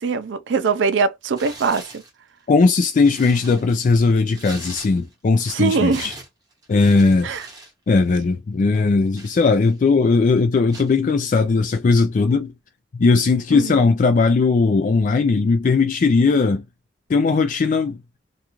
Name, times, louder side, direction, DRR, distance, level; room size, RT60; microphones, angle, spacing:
voice 1, 0.0-2.0 5.5-6.1 7.2-7.4 13.5-13.9, right 4 dB, 85° right, 0.4 m, -22 dB
Tearing, 1.3-2.1 2.6-5.3 5.6-7.7 8.0-8.2 8.7-9.9 10.7-11.0, right 2 dB, 25° right, 1.0 m, -41 dB
voice 2, 2.5-6.1 6.7-7.3 7.9-12.5 12.9-16.6 17.1-18.0, left 4 dB, 45° left, 0.3 m, -18 dB
2.4 x 2.3 x 2.9 m
head